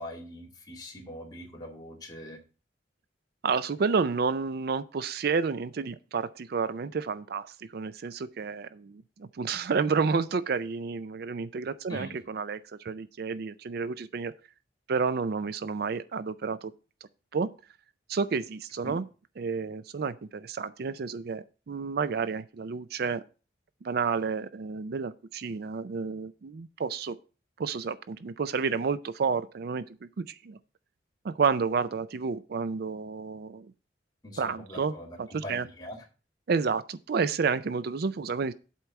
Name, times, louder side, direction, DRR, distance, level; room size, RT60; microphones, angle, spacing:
voice 1, 0.0-2.4 11.9-12.2 18.8-19.0 34.2-36.0, left 1 dB, 20° left, 2.2 m, -42 dB
voice 2, 3.4-14.3 14.9-16.7 17.3-17.5 18.1-19.0 19.4-23.2 23.8-27.2 27.6-30.6 31.2-33.7 34.4-35.7 36.5-38.5, right 5 dB, 55° right, 0.4 m, -30 dB
8.1 x 4.5 x 7.0 m
head